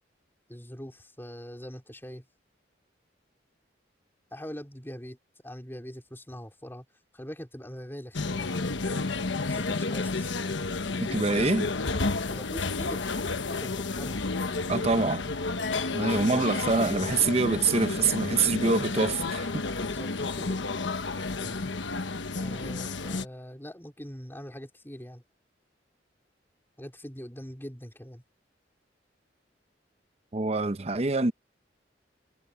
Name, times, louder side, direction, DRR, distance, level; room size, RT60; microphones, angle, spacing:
voice 1, 0.5-2.3 4.3-5.2 5.4-6.9 7.1-8.6 9.5-10.4 12.3-13.1 13.4-14.2 19.8-20.6 21.4-21.7 22.3-25.2 26.8-28.2, equal, 10° left, 4.0 m, -42 dB
sound 1, 8.1-23.2, left 3 dB, 80° left, 1.2 m, -31 dB
voice 2, 11.0-11.7 14.7-15.2 15.9-19.6 30.3-31.3, right 3 dB, 35° right, 0.7 m, -25 dB
head